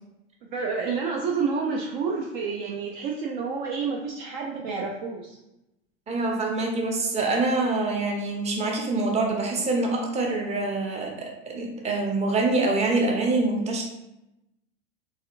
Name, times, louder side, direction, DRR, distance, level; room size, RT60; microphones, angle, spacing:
voice 1, 0.5-5.4, right 5 dB, 45° right, -1 dB, 0.5 m, -29 dB
voice 2, 6.1-13.8, right 3 dB, 20° right, 0 dB, 0.8 m, -25 dB
4.1 x 3.4 x 2.5 m, 0.91 s
figure-of-eight pair, 85°, 34 cm